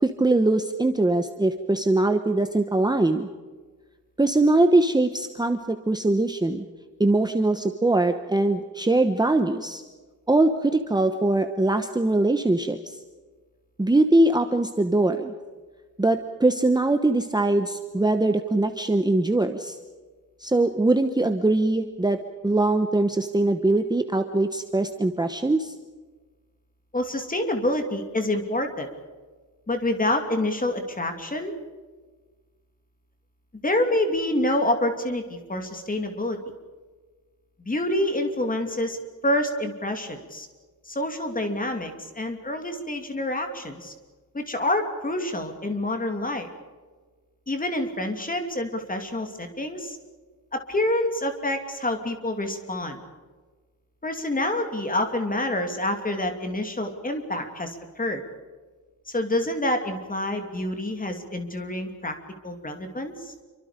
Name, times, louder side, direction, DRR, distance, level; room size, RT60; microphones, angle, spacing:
voice 1, 0.0-3.3 4.2-6.6 7.0-9.8 10.3-13.0 13.8-15.3 16.0-19.8 20.4-25.7, right 2 dB, 10° right, 6 dB, 1.0 m, -22 dB
voice 2, 26.9-28.9 29.7-31.5 33.6-36.4 37.6-39.0 39.2-40.5 40.9-43.9 44.3-46.5 47.5-50.0 50.5-53.0 54.0-58.2 59.1-62.2 62.4-63.3, left 1 dB, 25° left, 5 dB, 2.9 m, -27 dB
28.0 x 24.5 x 5.2 m, 1.4 s
wide cardioid pair, 165°, 36 cm